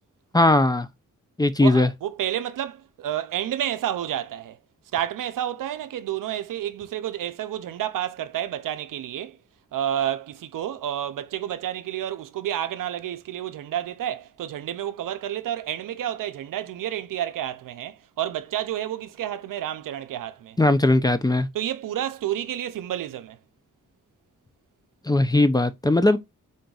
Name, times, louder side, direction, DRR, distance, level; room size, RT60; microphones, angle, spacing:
voice 1, 0.3-0.9 1.4-1.9 20.6-21.5 25.1-26.2, left 2 dB, 15° left, 0.4 m, -19 dB
voice 2, 1.6-4.6 4.9-9.4 9.7-20.6 21.5-23.4, right 11 dB, 80° right, 0.5 m, -30 dB
3.9 x 3.9 x 2.3 m
cardioid pair, 65°, 32 cm